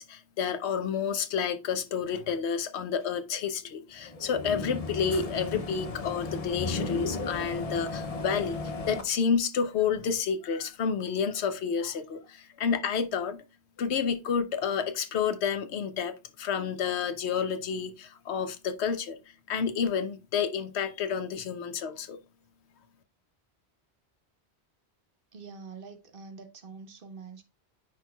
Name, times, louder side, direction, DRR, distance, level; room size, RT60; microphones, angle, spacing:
voice 1, 0.0-13.4 13.8-19.2 19.5-22.2, left 6 dB, 80° left, 1.0 m, -30 dB
sound 1, 4.0-9.0, left 3 dB, 40° left, 0.6 m, -35 dB
voice 2, 25.3-27.4, right 4 dB, 55° right, 1.1 m, -45 dB
9.4 x 4.5 x 2.3 m
omnidirectional pair, 1.1 m